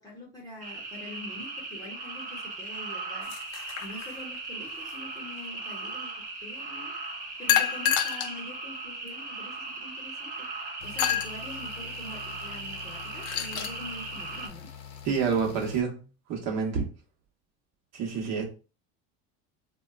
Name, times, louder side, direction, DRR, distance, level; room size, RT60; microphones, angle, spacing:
voice 1, 0.0-6.1 6.4-14.7, left 1 dB, 10° left, 0.9 m, -45 dB
sound 1, 0.6-14.5, right 3 dB, 25° right, 0.7 m, -38 dB
sound 2, 3.2-4.4 7.5-8.4 9.1-9.2 11.0-11.3 13.0-13.8, left 10 dB, 50° left, 0.5 m, -28 dB
sound 3, 10.8-15.8, left 8 dB, 80° left, 0.7 m, -45 dB
voice 2, 15.0-16.8 17.9-18.4, right 6 dB, 50° right, 1.0 m, -28 dB
4.2 x 2.2 x 2.4 m
cardioid pair, 145°, 34 cm